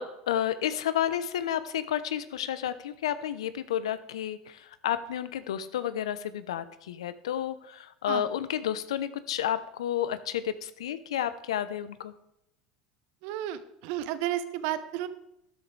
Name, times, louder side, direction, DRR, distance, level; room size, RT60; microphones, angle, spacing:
voice 1, 0.0-12.1, left 10 dB, 85° left, 14 dB, 0.8 m, -31 dB
voice 2, 13.2-15.1, right 12 dB, 65° right, 12 dB, 1.1 m, -32 dB
13.0 x 11.0 x 3.3 m, 0.82 s
hypercardioid pair, 90°, 3 cm